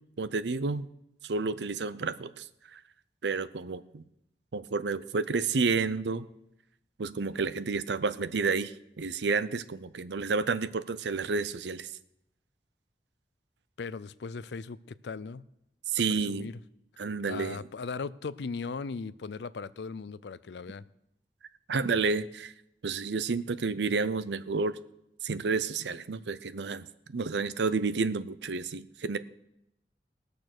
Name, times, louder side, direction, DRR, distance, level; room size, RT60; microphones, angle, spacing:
voice 1, 0.2-0.9 1.2-2.4 2.7-2.8 3.2-4.0 4.5-6.3 7.0-11.9 15.9-16.5 17.0-17.6 21.7-22.5 22.8-24.8 25.2-26.9 27.1-29.2, right 4 dB, 80° right, 15 dB, 0.6 m, -30 dB
voice 2, 13.8-14.8 15.0-15.4 16.1-16.6 17.3-20.8, left 4 dB, 80° left, 18 dB, 0.5 m, -38 dB
19.5 x 6.7 x 6.1 m, 0.83 s
head